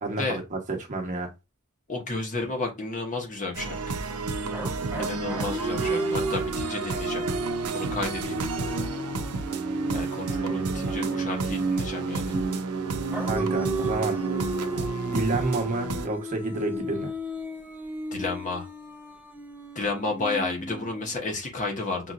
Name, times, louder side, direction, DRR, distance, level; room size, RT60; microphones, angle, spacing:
voice 1, 0.0-1.3 10.3-11.0 13.3-14.2 15.1-17.1, right 2 dB, 35° right, 1.1 m, -30 dB
voice 2, 1.9-4.0 5.0-7.2 7.7-8.4 9.9-12.4 18.1-18.7 19.7-22.1, left 3 dB, 35° left, 1.2 m, -32 dB
sound 1, 3.5-16.1, right 4 dB, 90° right, 0.6 m, -30 dB
sound 2, 4.5-12.6 13.1-21.2, right 1 dB, 10° right, 0.6 m, -34 dB
5.8 x 2.9 x 2.5 m
head